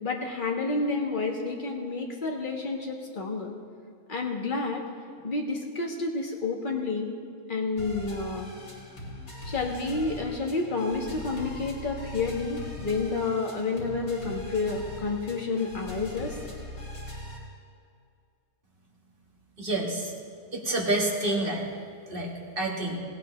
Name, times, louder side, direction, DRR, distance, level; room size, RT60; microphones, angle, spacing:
voice 1, 0.0-3.5 4.1-4.8 5.2-7.1 7.5-8.5 9.5-16.4, left 3 dB, 30° left, 0 dB, 1.6 m, -30 dB
sound 1, 7.8-17.4, left 1 dB, 90° left, 3.4 m, -41 dB
voice 2, 19.6-20.1 20.5-21.7 22.1-23.0, right 2 dB, 35° right, -2 dB, 2.1 m, -28 dB
17.5 x 17.0 x 3.3 m, 2.2 s
omnidirectional pair, 1.7 m